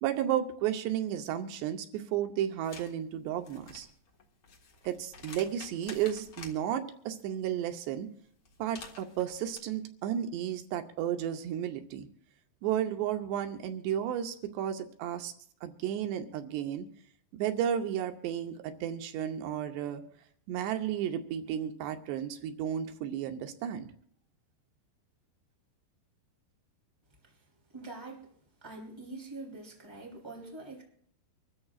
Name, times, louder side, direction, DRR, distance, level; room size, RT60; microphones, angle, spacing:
voice 1, 0.0-3.9 4.8-8.1 8.6-12.1 12.6-15.3 15.6-16.9 17.3-20.0 20.5-23.9, right 10 dB, 85° right, 6 dB, 3.1 m, -33 dB
sound 1, 2.6-2.9 3.3-6.6 8.4-9.6, left 4 dB, 55° left, 1.5 m, -49 dB
voice 2, 27.7-28.3 28.6-30.8, right 2 dB, 5° right, -2 dB, 2.6 m, -44 dB
25.0 x 13.5 x 2.4 m, 0.63 s
omnidirectional pair, 4.8 m